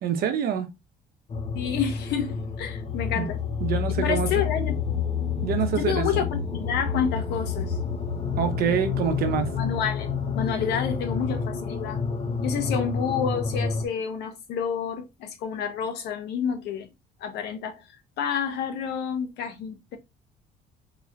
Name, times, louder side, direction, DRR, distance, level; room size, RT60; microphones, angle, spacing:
voice 1, 0.0-0.7 3.1-3.3 3.6-4.3 5.4-6.2 8.4-9.5, right 8 dB, 65° right, 0.8 m, -26 dB
sound 1, 1.3-13.9, left 6 dB, 35° left, 0.8 m, -29 dB
voice 2, 1.5-3.4 3.9-4.8 5.7-7.8 9.6-12.0 12.4-16.9 17.2-17.8 18.2-20.0, left 7 dB, 80° left, 1.0 m, -29 dB
4.0 x 3.0 x 2.4 m
cardioid pair, 110°, 17 cm